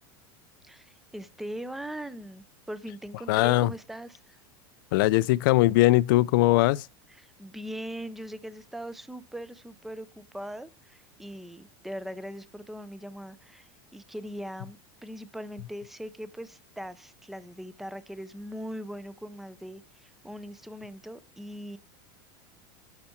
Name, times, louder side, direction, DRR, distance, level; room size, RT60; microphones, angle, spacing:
voice 1, 0.6-4.4 7.1-21.8, equal, ahead, 0.5 m, -40 dB
voice 2, 3.3-3.7 4.9-6.9, left 18 dB, 65° left, 0.4 m, -21 dB
11.5 x 5.8 x 4.4 m
supercardioid pair, 165°, 12 cm